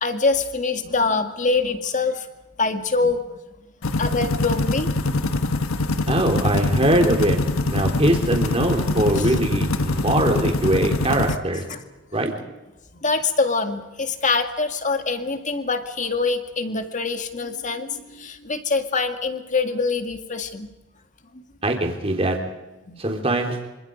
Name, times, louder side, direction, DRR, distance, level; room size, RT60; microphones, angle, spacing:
voice 1, 0.0-2.3 2.6-3.3 4.0-5.2 9.2-9.3 11.7-11.8 12.9-20.7 21.3-21.4 22.9-23.0, left 4 dB, 35° left, 7 dB, 1.9 m, -24 dB
sound 1, 3.8-11.4, left 2 dB, 90° left, 1.4 m, -24 dB
voice 2, 6.1-11.6 12.1-12.3 21.6-22.4 23.0-23.6, right 1 dB, 30° right, 3 dB, 3.6 m, -22 dB
26.5 x 26.0 x 5.3 m, 1.1 s
head